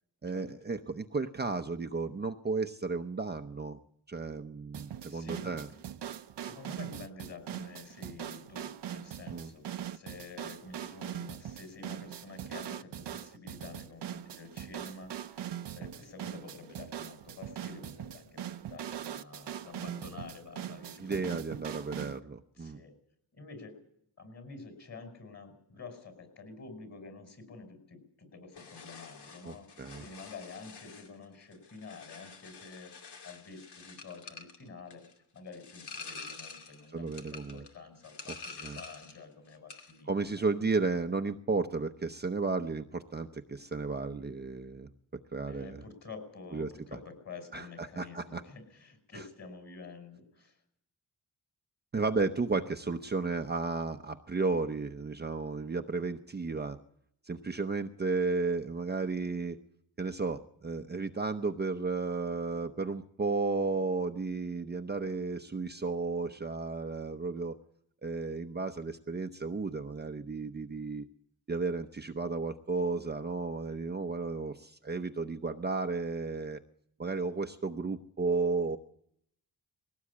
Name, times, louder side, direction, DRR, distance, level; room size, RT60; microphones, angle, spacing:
voice 1, 0.2-3.8 4.1-5.7 9.3-9.5 21.0-22.8 29.4-30.0 36.9-37.6 38.6-38.8 40.1-44.9 45.3-45.8 46.5-46.7 47.5-48.4 49.1-49.2 51.9-56.8 57.2-59.6 60.0-67.5 68.0-71.1 71.5-76.6 77.0-78.8, right 4 dB, 25° right, 5 dB, 0.8 m, -33 dB
sound 1, 4.7-22.2, right 10 dB, 85° right, 0.9 m, -41 dB
voice 2, 5.1-5.6 6.4-21.3 22.6-22.9 23.3-23.8 24.2-32.9 33.2-35.0 35.3-37.1 37.3-40.1 45.5-50.6, left 4 dB, 40° left, 6 dB, 5.7 m, -49 dB
sound 2, 28.5-39.3 39.5-40.0, left 4 dB, 75° left, 2.7 m, -48 dB
21.0 x 17.5 x 8.5 m, 0.70 s
wide cardioid pair, 150°, 40 cm